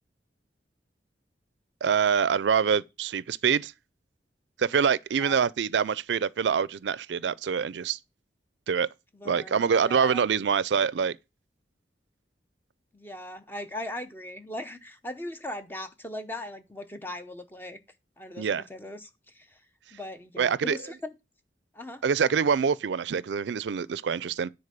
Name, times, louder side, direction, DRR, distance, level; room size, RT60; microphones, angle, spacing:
voice 1, 1.8-3.7 4.6-8.0 8.7-8.9 9.2-11.2 18.4-18.6 20.4-20.8 22.0-24.5, right 6 dB, 80° right, 0.4 m, -25 dB
voice 2, 9.1-10.2 12.9-17.8 18.2-19.6 19.9-21.1 21.7-22.0, left 1 dB, 10° left, 0.7 m, -39 dB
9.8 x 4.2 x 6.7 m
head